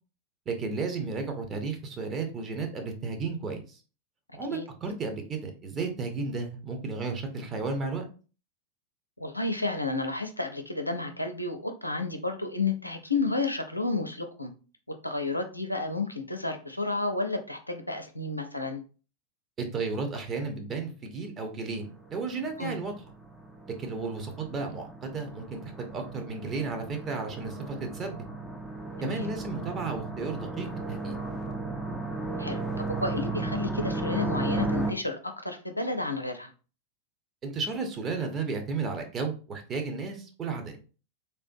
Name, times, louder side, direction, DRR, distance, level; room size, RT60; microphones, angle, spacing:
voice 1, 0.5-3.8 4.4-8.0 19.6-22.9 23.8-28.2 29.0-31.2 37.4-40.8, right 4 dB, 25° right, 3 dB, 0.7 m, -33 dB
voice 2, 9.2-14.5 15.0-18.8 22.6-22.8 29.0-29.3 32.4-36.5, left 3 dB, 85° left, 6 dB, 0.4 m, -31 dB
sound 1, 21.7-34.9, right 3 dB, ahead, 0.4 m, -34 dB
3.3 x 2.5 x 2.6 m, 0.35 s
figure-of-eight pair, 90°, 0 cm